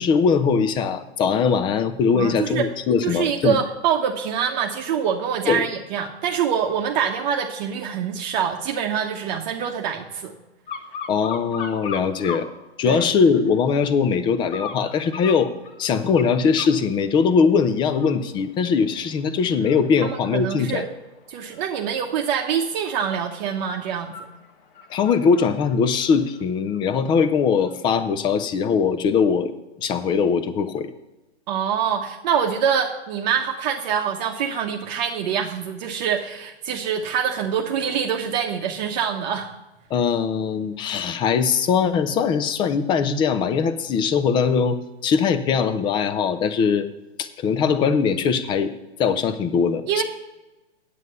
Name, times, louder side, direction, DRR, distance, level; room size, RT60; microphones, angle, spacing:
voice 1, 0.0-3.6 5.5-5.7 11.1-12.5 12.8-15.5 15.8-20.8 24.9-30.9 39.9-46.9 47.2-48.7 49.0-50.0, left 6 dB, 15° left, 11 dB, 0.4 m, -21 dB
voice 2, 2.1-2.7 3.0-10.3 12.8-13.1 20.0-20.9 21.3-24.1 31.5-39.5 49.9-50.0, right 8 dB, 40° right, 2 dB, 0.9 m, -25 dB
sound 1, 10.7-12.5 12.9-13.6 14.5-16.8 17.3-17.5 17.9-27.2 27.6-27.7, left 6 dB, 50° left, 1.5 m, -39 dB
9.1 x 8.4 x 5.4 m, 1.0 s
hypercardioid pair, 120°, 34 cm